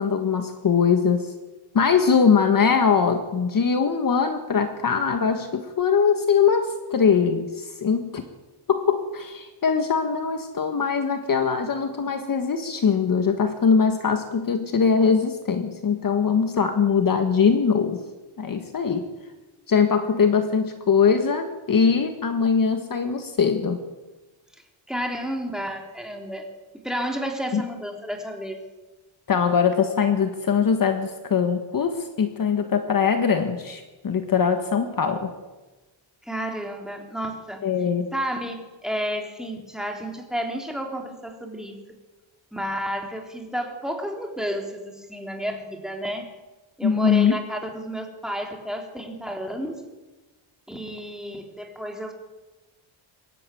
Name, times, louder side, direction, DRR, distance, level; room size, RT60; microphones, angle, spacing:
voice 1, 0.0-1.3 1.7-8.2 8.7-18.0 18.4-19.1 19.7-23.8 27.5-27.6 29.3-35.3 37.6-38.1 46.8-47.4, left 6 dB, 45° left, 7 dB, 1.6 m, -22 dB
voice 2, 24.9-26.5 26.8-28.6 36.2-37.6 38.1-38.6 38.8-41.8 42.5-46.3 46.8-49.8 50.7-52.1, equal, ahead, 2 dB, 3.5 m, -31 dB
24.0 x 13.0 x 9.3 m, 1.1 s
wide cardioid pair, 145°, 47 cm